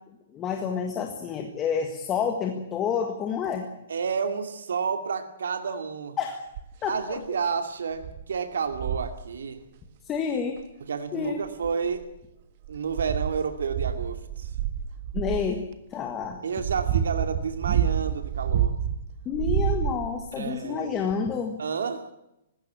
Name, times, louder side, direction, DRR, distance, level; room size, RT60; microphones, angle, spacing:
voice 1, 0.3-3.7 6.2-6.4 6.8-7.2 10.0-10.6 11.1-11.4 15.1-15.6 15.9-16.4 19.2-21.6, left 6 dB, 15° left, 4 dB, 1.7 m, -29 dB
voice 2, 3.9-6.2 6.9-9.6 10.9-12.1 12.7-14.5 16.4-18.8 20.4-20.9 21.6-22.1, right 6 dB, 85° right, 7 dB, 2.4 m, -30 dB
sound 1, 6.5-6.9 7.4-7.5 8.0-8.2 8.7-9.2 10.6-10.7 11.5-12.1 12.6-15.5 16.2-19.0 19.3-20.3 21.1-21.2, right 9 dB, 35° right, 1.6 m, -28 dB
19.5 x 16.5 x 8.6 m, 0.87 s
hypercardioid pair, 170°, 0 cm